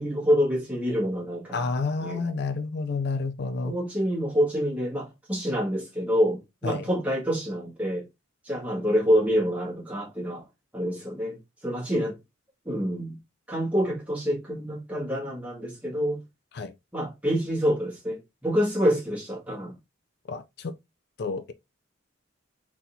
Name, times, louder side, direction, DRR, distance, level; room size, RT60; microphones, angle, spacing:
voice 1, 0.0-1.7 2.0-2.2 3.6-8.1 8.4-10.5 10.7-12.2 12.7-13.2 13.5-16.2 16.9-19.8, equal, 5° right, 1.8 m, -27 dB
voice 2, 1.5-3.8 6.6-6.9 16.5-16.7 20.3-20.7 21.2-21.5, left 4 dB, 55° left, 0.4 m, -30 dB
4.2 x 4.1 x 2.7 m
head